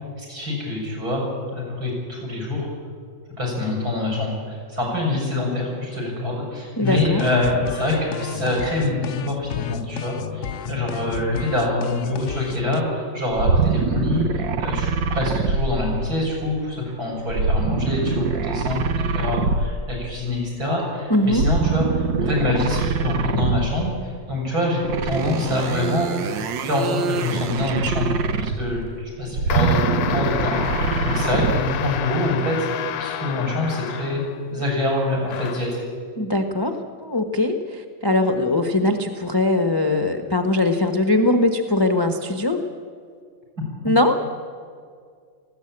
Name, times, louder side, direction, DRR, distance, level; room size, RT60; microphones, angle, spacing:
voice 1, 0.2-1.3 1.5-2.7 3.4-26.1 26.6-28.1 28.4-32.7 33.0-34.2 34.5-35.8, left 2 dB, 50° right, -4 dB, 7.5 m, -25 dB
sound 1, 6.8-12.8, left 10 dB, 80° left, 0.6 m, -32 dB
voice 2, 6.8-7.3 21.1-21.5 36.2-42.6 43.8-44.2, left 2 dB, 20° left, 4 dB, 0.8 m, -21 dB
sound 2, 13.3-16.4 17.3-20.0 21.3-23.9 24.8-28.8 29.3-31.8, right 5 dB, 80° right, 1.7 m, -24 dB
sound 3, 29.5-34.5 35.2-35.8, left 9 dB, 65° left, 1.1 m, -29 dB
19.0 x 15.5 x 8.8 m, 2.1 s
omnidirectional pair, 2.0 m